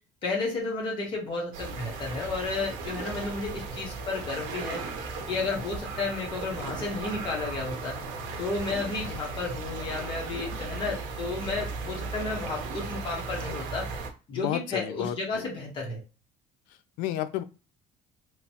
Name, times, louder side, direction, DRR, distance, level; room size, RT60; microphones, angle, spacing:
voice 1, 0.2-4.8 5.3-8.0 8.4-13.9 14.3-16.0, left 3 dB, 35° left, -2 dB, 1.0 m, -32 dB
sound 1, 1.5-14.1, right 3 dB, 70° right, 0.7 m, -36 dB
voice 2, 14.3-15.5 17.0-17.4, left 12 dB, 85° left, 11 dB, 0.4 m, -31 dB
3.1 x 2.0 x 2.8 m, 0.33 s
cardioid pair, 175°, 14 cm